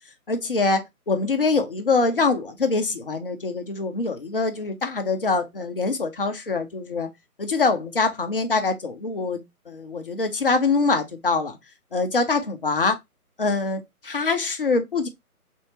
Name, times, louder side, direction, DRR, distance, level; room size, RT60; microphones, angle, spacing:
voice 1, 0.3-0.8 1.1-7.1 7.4-11.6 11.9-13.0 13.4-15.1, left 3 dB, 40° left, 0.5 m, -24 dB
3.4 x 2.7 x 2.9 m
figure-of-eight pair, 145°, 45 cm